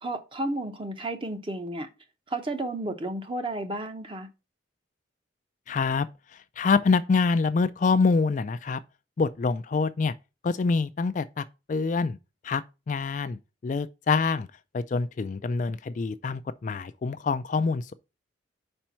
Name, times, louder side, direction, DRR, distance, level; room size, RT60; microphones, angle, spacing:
voice 1, 0.0-1.9 2.3-4.3, right 1 dB, 25° right, 0.8 m, -32 dB
voice 2, 5.7-8.8 9.2-10.1 10.4-12.2 12.4-14.5 14.7-17.9, left 4 dB, 40° left, 0.3 m, -26 dB
5.1 x 4.4 x 5.6 m
head